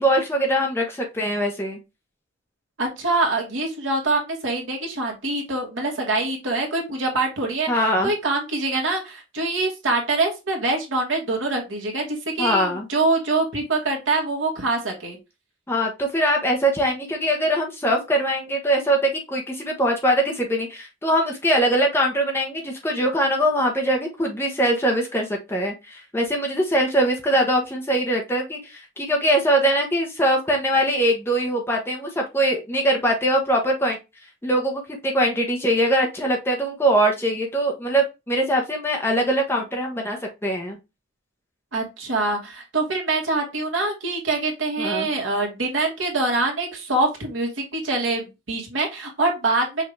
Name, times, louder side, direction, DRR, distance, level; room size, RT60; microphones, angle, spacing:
voice 1, 0.0-1.8 7.7-8.1 12.4-12.9 15.7-34.0 34.4-40.8 44.8-45.1, right 1 dB, 10° left, 0 dB, 0.9 m, -22 dB
voice 2, 2.8-15.2 41.7-49.9, right 2 dB, 75° right, 1 dB, 1.5 m, -24 dB
5.5 x 2.6 x 3.2 m, 0.25 s
head